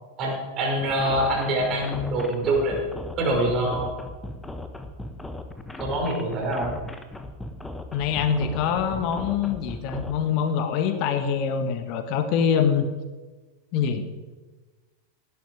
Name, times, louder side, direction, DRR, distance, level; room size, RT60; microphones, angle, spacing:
voice 1, 0.2-2.8 3.2-3.9 5.8-6.7, right 1 dB, 35° right, -1 dB, 6.1 m, -25 dB
sound 1, 0.8-10.1, left 1 dB, 10° left, 1.4 m, -37 dB
voice 2, 7.9-12.9 13.7-14.1, left 7 dB, 40° left, 8 dB, 1.9 m, -24 dB
18.5 x 11.5 x 5.1 m, 1.3 s
figure-of-eight pair, 90°, 0 cm